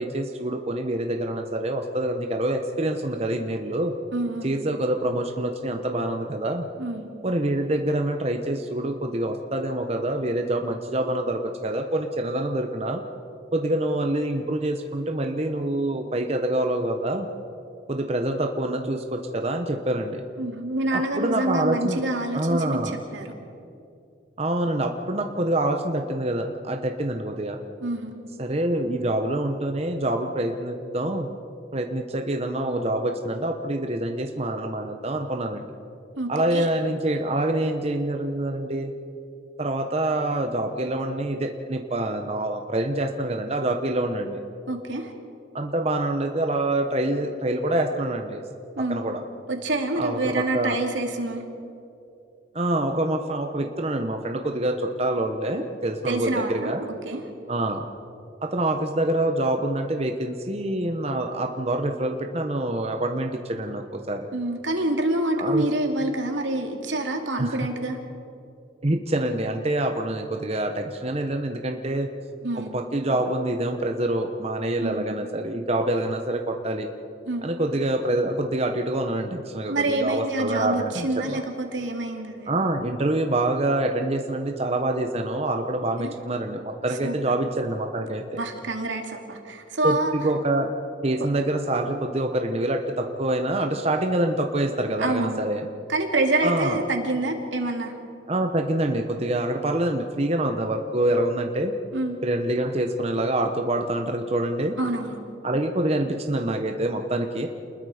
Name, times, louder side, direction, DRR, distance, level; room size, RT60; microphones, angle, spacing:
voice 1, 0.0-3.9 4.4-6.7 7.2-13.0 13.5-17.3 17.9-20.2 20.9-22.0 22.3-23.0 24.4-27.6 28.4-31.3 31.7-35.7 36.3-38.9 39.6-44.4 45.5-48.4 48.9-49.2 50.0-50.8 52.5-56.8 57.5-57.9 58.4-64.3 65.4-65.6 67.4-67.7 68.8-72.1 72.5-76.9 77.4-81.4 82.5-88.4 89.8-90.7 91.0-95.7 96.4-96.8 98.3-101.7 102.2-104.7 105.4-107.5, right 1 dB, 35° right, 4 dB, 1.0 m, -26 dB
voice 2, 4.1-4.5 6.8-7.1 20.4-22.8 23.1-23.3 27.8-28.1 36.2-36.7 44.7-45.1 48.8-49.0 49.5-51.4 56.1-56.7 57.0-57.2 64.3-68.0 72.4-72.7 74.8-75.2 77.3-77.5 79.7-82.5 86.0-86.1 87.0-87.2 88.3-90.1 95.0-95.5 95.9-97.9 101.9-102.2 104.8-105.2, right 2 dB, 90° right, 3 dB, 2.6 m, -27 dB
28.5 x 21.0 x 5.0 m, 2.7 s
head